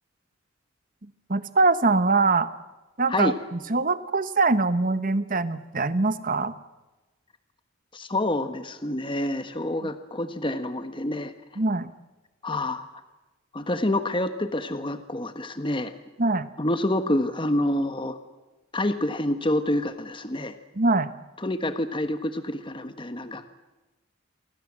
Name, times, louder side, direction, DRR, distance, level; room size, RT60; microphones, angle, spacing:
voice 1, 1.3-2.5 3.0-6.5 11.6-11.9 16.2-16.5 20.8-21.1, right 3 dB, 45° right, 13 dB, 1.2 m, -23 dB
voice 2, 7.9-11.3 12.4-12.8 13.5-15.9 16.6-18.2 18.7-20.5 21.4-23.5, left 1 dB, 25° left, 9 dB, 1.4 m, -27 dB
29.0 x 24.0 x 7.6 m, 1.1 s
head